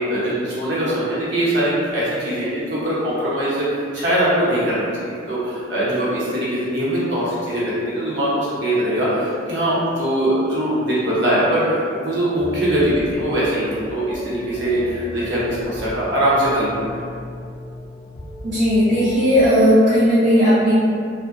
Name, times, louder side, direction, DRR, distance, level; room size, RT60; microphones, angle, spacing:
voice 1, 0.1-17.0, right 1 dB, 70° right, -9 dB, 0.8 m, -21 dB
sound 1, 12.4-19.5, equal, 20° left, 0.4 m, -36 dB
voice 2, 18.4-20.7, equal, 45° right, -11 dB, 0.5 m, -15 dB
2.6 x 2.1 x 2.5 m, 2.3 s
head